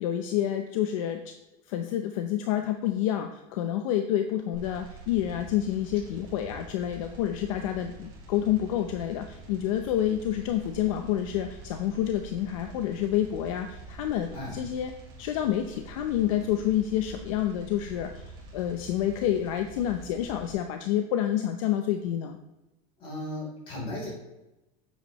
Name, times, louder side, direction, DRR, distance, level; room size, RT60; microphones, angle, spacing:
voice 1, 0.0-1.3 1.7-14.9 15.2-22.4, left 11 dB, 60° left, 6 dB, 0.7 m, -28 dB
sound 1, 4.5-20.5, right 3 dB, 25° right, 2.9 m, -46 dB
voice 2, 14.3-14.6 23.0-24.1, left 1 dB, 25° left, -3 dB, 3.6 m, -36 dB
10.0 x 8.1 x 3.1 m, 0.96 s
supercardioid pair, 180°, 19 cm